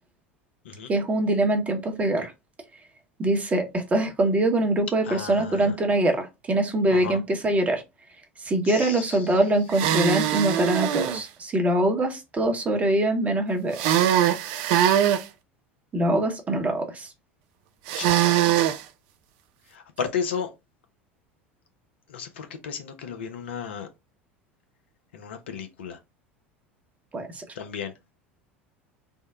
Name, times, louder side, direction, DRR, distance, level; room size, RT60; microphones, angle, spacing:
voice 1, 0.9-2.3 3.2-7.8 8.4-13.8 15.9-17.1 27.1-27.4, right 1 dB, 20° right, 0.9 m, -23 dB
voice 2, 5.0-5.7 6.9-7.2 8.6-9.2 17.9-18.4 19.7-20.5 22.1-23.9 25.1-26.0 27.6-27.9, left 6 dB, 65° left, 0.6 m, -34 dB
sound 1, 9.7-11.2 13.7-15.2 17.9-18.8, right 11 dB, 55° right, 0.4 m, -22 dB
3.6 x 2.1 x 3.4 m
figure-of-eight pair, 75°, 6 cm